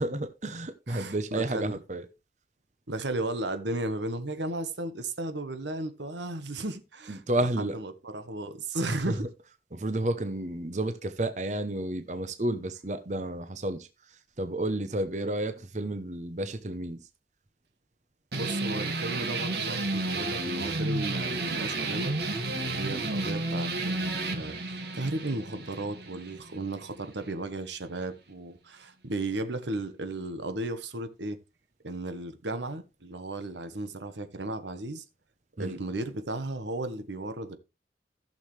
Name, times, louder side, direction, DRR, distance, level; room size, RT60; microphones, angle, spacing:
voice 1, 0.0-2.1 7.1-7.8 9.1-9.2 9.7-13.9 14.4-17.0 35.6-35.8, right 1 dB, 40° right, 0.9 m, -31 dB
voice 2, 0.9-1.8 2.9-9.3 18.3-22.2 22.6-31.4 31.8-35.0 35.6-37.6, right 2 dB, 80° right, 1.2 m, -35 dB
sound 1, 18.3-27.4, right 2 dB, 60° right, 1.9 m, -32 dB
15.0 x 6.6 x 3.3 m
head